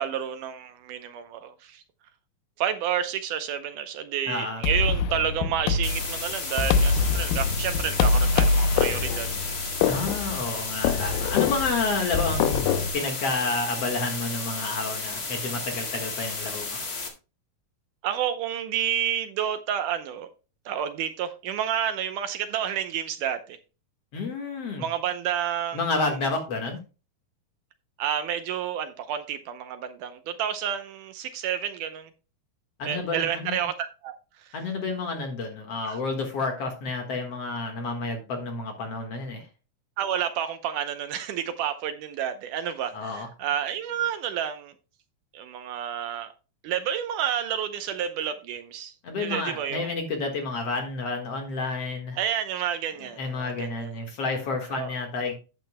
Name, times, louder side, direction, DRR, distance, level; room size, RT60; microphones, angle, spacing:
voice 1, 0.0-1.8 2.6-9.5 18.0-20.3 20.7-23.6 24.8-25.9 28.0-32.1 32.9-34.1 35.8-36.0 40.0-44.7 45.3-46.3 46.6-49.9 52.2-53.9 54.7-54.9, right 9 dB, 75° right, 2.1 m, -30 dB
voice 2, 4.3-4.6 9.8-12.6 12.9-16.8 24.1-24.8 25.7-26.8 32.8-33.6 34.5-39.4 42.9-43.3 49.0-52.2 53.0-55.3, left 3 dB, 50° left, 2.2 m, -30 dB
sound 1, 4.6-12.9, left 5 dB, 80° left, 2.5 m, -24 dB
sound 2, 5.8-17.1, left 3 dB, 35° left, 1.8 m, -33 dB
12.0 x 9.3 x 2.2 m
omnidirectional pair, 4.1 m